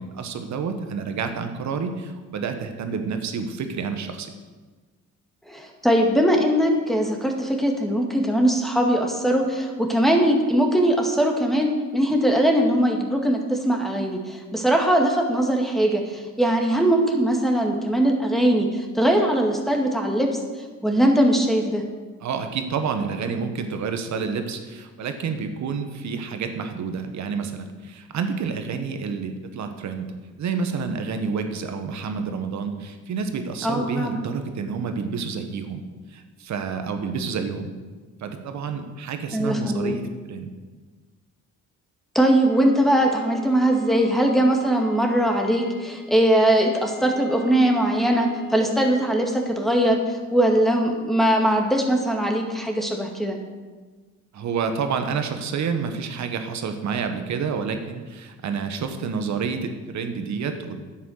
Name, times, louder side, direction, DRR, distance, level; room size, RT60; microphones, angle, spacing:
voice 1, 0.0-4.3 22.2-30.1 30.4-35.8 36.1-37.7 38.2-40.5 54.3-60.9, right 5 dB, 65° right, 7 dB, 1.3 m, -29 dB
voice 2, 5.5-20.3 20.8-21.8 33.6-34.2 39.3-39.9 42.1-53.4, right 1 dB, ahead, 2 dB, 2.0 m, -21 dB
sound 1, 42.4-49.4, left 1 dB, 75° left, 2.4 m, -43 dB
10.0 x 8.2 x 6.5 m, 1.4 s
cardioid pair, 90°, 30 cm